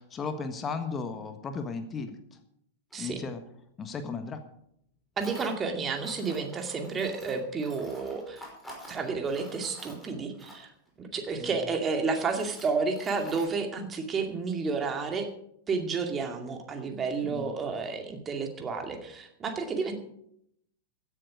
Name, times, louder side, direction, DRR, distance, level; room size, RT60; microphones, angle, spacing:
voice 1, 0.0-2.1 3.0-3.4 3.8-4.4 11.4-11.6 17.2-17.5, left 4 dB, 20° left, 8 dB, 1.4 m, -35 dB
Tools, 2.9-3.0 5.2-5.6 6.0-10.9 11.6-11.7 12.1-13.5, equal, 5° left, 5.5 m, -48 dB
voice 2, 5.2-8.4 8.9-10.7 11.0-15.3 15.7-19.9, right 4 dB, 20° right, 4 dB, 2.3 m, -31 dB
16.0 x 11.0 x 5.1 m, 0.72 s
figure-of-eight pair, 95°, 0 cm